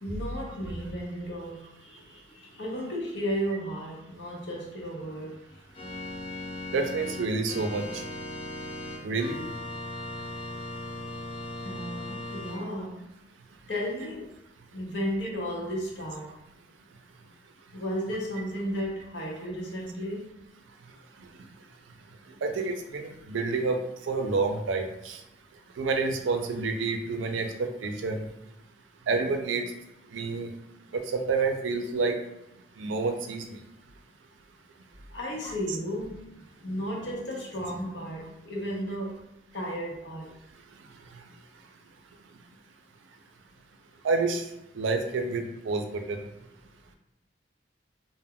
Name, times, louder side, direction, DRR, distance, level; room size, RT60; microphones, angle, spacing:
voice 1, 0.0-6.2 6.6-6.7 11.6-13.1 13.7-14.3 14.7-16.3 17.7-20.4 35.1-36.3 36.6-39.2 39.5-40.3, equal, 65° left, -2 dB, 0.7 m, -34 dB
Organ, 5.7-12.6, left 2 dB, 30° left, 0.3 m, -38 dB
voice 2, 6.7-7.8 9.0-9.4 22.4-23.8 24.1-25.2 25.8-28.2 29.1-29.6 30.1-30.5 31.1-32.2 32.8-33.6 35.4-35.5 44.0-44.4 44.8-46.2, right 4 dB, 85° right, 5 dB, 0.4 m, -28 dB
2.2 x 2.0 x 3.5 m, 0.88 s
head